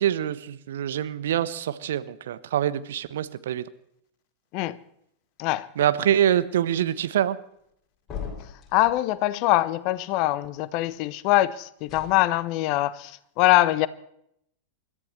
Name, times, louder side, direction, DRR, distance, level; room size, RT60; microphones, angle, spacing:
voice 1, 0.0-3.6 5.8-7.4, right 10 dB, 60° right, 1.0 m, -25 dB
sound 1, 8.1-9.0 11.8-12.1, left 7 dB, 25° left, 6.5 m, -37 dB
voice 2, 8.7-13.9, left 16 dB, 45° left, 0.9 m, -23 dB
28.5 x 13.5 x 3.2 m
figure-of-eight pair, 90°, 0 cm